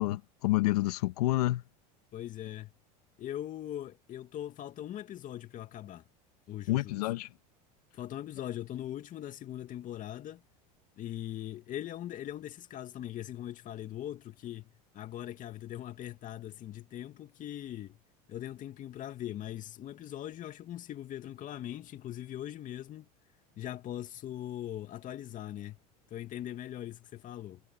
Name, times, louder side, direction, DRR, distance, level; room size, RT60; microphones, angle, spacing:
voice 1, 0.0-1.6 6.7-7.3, left 17 dB, 80° left, 2.2 m, -28 dB
voice 2, 2.1-2.7 3.2-6.0 6.5-7.0 7.9-10.4 11.0-18.0 18.3-23.1 23.6-25.8 26.1-27.6, left 12 dB, 40° left, 2.4 m, -41 dB
supercardioid pair, 105°, 20 cm